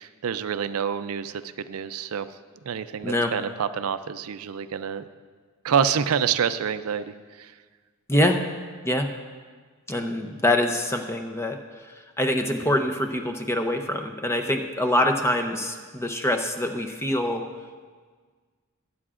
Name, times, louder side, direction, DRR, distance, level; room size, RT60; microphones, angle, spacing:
voice 1, 0.0-2.4 2.6-5.0 5.6-7.5, right 7 dB, 80° right, 12 dB, 0.4 m, -27 dB
voice 2, 9.9-11.6 12.2-17.4, left 1 dB, 10° left, 5 dB, 0.7 m, -24 dB
23.0 x 8.6 x 2.5 m, 1.5 s
head